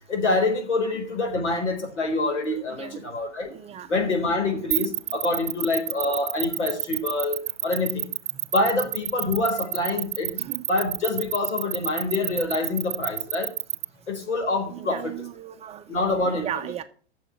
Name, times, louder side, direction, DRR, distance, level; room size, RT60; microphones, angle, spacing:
voice 1, 0.1-3.5 3.9-7.4 7.6-8.1 8.5-10.4 10.7-13.5 14.1-15.1 15.9-16.7, left 2 dB, 85° left, 4.4 m, -26 dB
voice 2, 3.5-3.9 10.4-10.6 14.7-16.0 16.3-16.8, right 11 dB, 20° right, 0.6 m, -36 dB
sound 1, 4.7-13.8, right 13 dB, 80° right, 0.5 m, -28 dB
9.0 x 7.1 x 8.7 m
hypercardioid pair, 125°, 34 cm